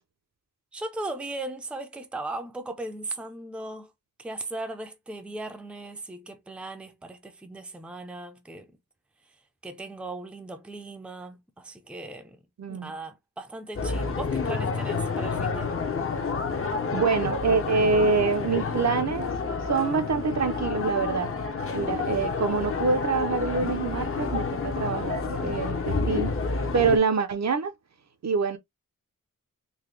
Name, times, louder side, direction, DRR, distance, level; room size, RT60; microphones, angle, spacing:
voice 1, 0.7-3.9 4.2-8.8 9.6-12.4 12.7-15.7, right 2 dB, 5° right, 0.5 m, -38 dB
voice 2, 12.6-12.9 16.9-19.3 19.7-21.3 21.7-26.3 26.7-27.7 28.2-28.6, right 5 dB, 55° right, 0.7 m, -25 dB
sound 1, 13.8-27.0, left 4 dB, 40° left, 0.8 m, -29 dB
4.0 x 2.2 x 3.2 m
wide cardioid pair, 100°, 33 cm